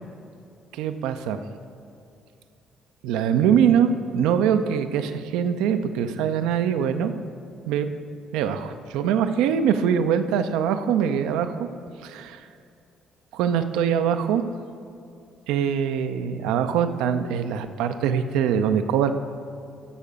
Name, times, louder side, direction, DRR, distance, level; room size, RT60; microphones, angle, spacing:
voice 1, 0.7-1.4 3.0-7.1 7.7-7.9 8.3-11.7 12.0-12.4 13.3-14.4 15.5-19.1, right 8 dB, 70° right, 9 dB, 0.5 m, -23 dB
11.0 x 7.2 x 5.2 m, 2.5 s
hypercardioid pair, 50°, 0 cm